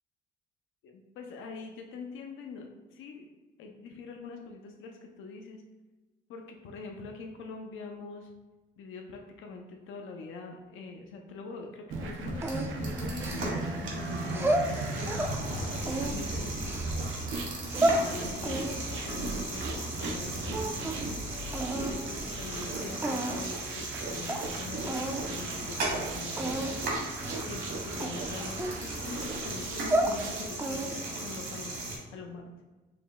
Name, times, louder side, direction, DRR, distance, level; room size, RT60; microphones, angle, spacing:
voice 1, 0.8-3.3 3.6-5.6 6.3-8.3 8.8-17.1 17.9-21.0 21.7-26.8 27.4-32.5, left 4 dB, 80° left, 2 dB, 0.5 m, -43 dB
sound 1, 11.9-30.5, right 2 dB, 80° right, 0.6 m, -38 dB
sound 2, 12.1-32.0, right 2 dB, 65° right, 1.4 m, -38 dB
sound 3, 12.4-13.8 14.2-15.4 15.8-16.9 17.5-18.0 18.4-20.2 20.5-21.1 21.5-22.0 22.6-22.7 23.0-23.6 23.9-24.0 24.3-24.4 24.9-25.2 25.6-25.8 26.4-26.7 27.2-27.6 28.0-29.2 29.7-30.2 30.6-31.1, right 1 dB, 10° right, 0.4 m, -31 dB
4.8 x 2.0 x 3.5 m, 1.2 s
cardioid pair, 90°, 20 cm